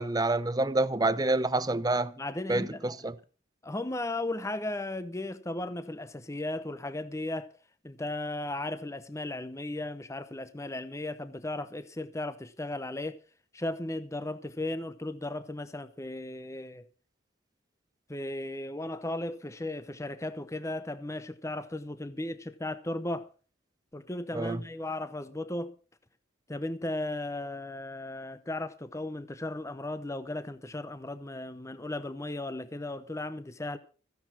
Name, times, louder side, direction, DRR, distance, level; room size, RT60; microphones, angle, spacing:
voice 1, 0.0-2.1 2.5-3.2 24.3-24.6, right 2 dB, 20° right, 0.7 m, -27 dB
voice 2, 2.2-2.8 3.6-7.5 7.8-13.2 13.5-16.9 18.1-23.3 23.9-25.7 26.5-33.8, left 2 dB, 15° left, 0.8 m, -36 dB
15.0 x 10.5 x 5.9 m
head